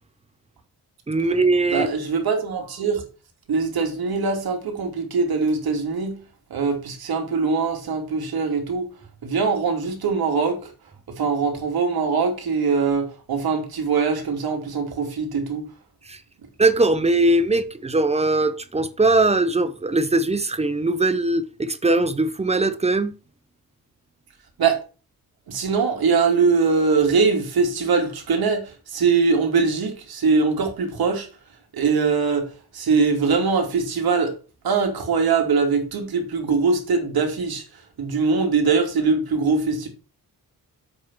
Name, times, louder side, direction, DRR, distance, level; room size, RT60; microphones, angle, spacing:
voice 1, 1.1-1.9 16.1-16.2 16.6-23.2, right 2 dB, 15° right, 0.8 m, -20 dB
voice 2, 1.7-3.0 3.5-6.2 6.5-8.9 9.2-10.6 11.2-15.6 24.6-24.8 25.5-31.3 31.7-32.5 32.7-34.3 34.6-37.6 38.0-39.9, right 5 dB, 75° right, 2.9 m, -22 dB
7.8 x 6.2 x 6.0 m
wide cardioid pair, 170°, 37 cm